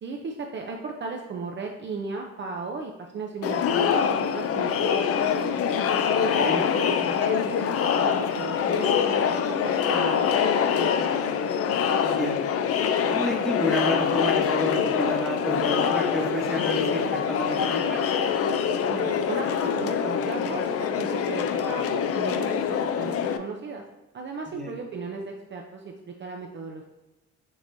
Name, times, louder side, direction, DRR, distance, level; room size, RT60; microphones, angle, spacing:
voice 1, 0.0-5.6 6.1-11.4 18.9-23.8 24.1-26.9, right 4 dB, 40° right, 1 dB, 0.5 m, -36 dB
Crowd, 3.4-23.4, left 7 dB, 50° left, 0.4 m, -25 dB
voice 2, 12.0-12.5 13.1-18.0 24.5-24.7, equal, ahead, -1 dB, 1.0 m, -30 dB
6.2 x 2.9 x 2.6 m, 1.0 s
cardioid pair, 90°, 30 cm